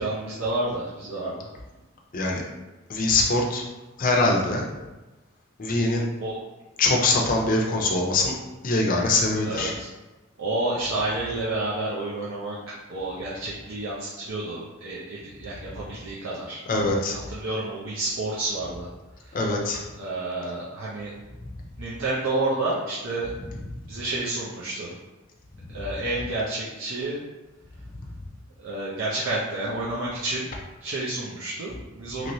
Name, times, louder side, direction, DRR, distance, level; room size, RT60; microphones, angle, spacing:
voice 1, 0.0-1.5 6.2-6.4 9.4-9.9 10.4-16.6 16.9-17.0 17.3-18.9 20.0-21.1 21.8-23.3 23.9-24.9 25.7-27.2 28.6-30.5 30.8-32.3, right 2 dB, 80° right, -7 dB, 0.6 m, -30 dB
voice 2, 2.9-3.6 4.0-4.7 5.6-6.1 6.8-8.3 8.6-9.7 16.7-17.2 19.3-19.8 23.7-23.8 32.2-32.3, left 2 dB, 40° left, 0 dB, 0.5 m, -23 dB
3.0 x 3.0 x 2.7 m, 1.1 s
head